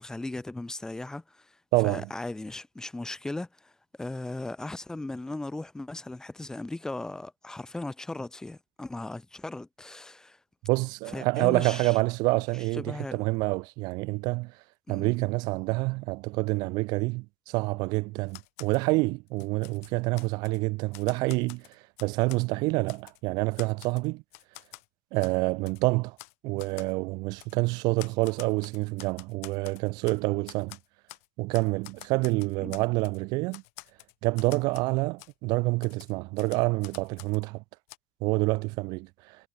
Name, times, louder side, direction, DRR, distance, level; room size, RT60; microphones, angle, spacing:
voice 1, 0.0-1.6 1.8-3.7 4.0-10.4 11.1-12.0 12.7-13.2 14.9-15.1 32.6-32.8, left 2 dB, 10° left, 4.0 m, -37 dB
voice 2, 1.7-2.1 10.6-14.5 14.9-21.6 22.0-24.2 25.1-26.2 26.4-30.8 31.4-33.6 34.2-37.6 38.2-39.4, right 25 dB, 60° right, 1.3 m, -27 dB
Typewriter, 18.3-18.9 19.3-20.6 20.9-22.5 22.9-23.2 23.6-24.9 25.2-25.4 25.7-25.8 26.2-26.3 26.6-26.9 27.4-27.6 28.0-30.2 30.5-31.3 31.5-33.2 33.5-34.9 35.2-35.3 35.8-37.5 37.9-38.0, left 27 dB, 75° left, 7.1 m, -48 dB
supercardioid pair, 125°, 8 cm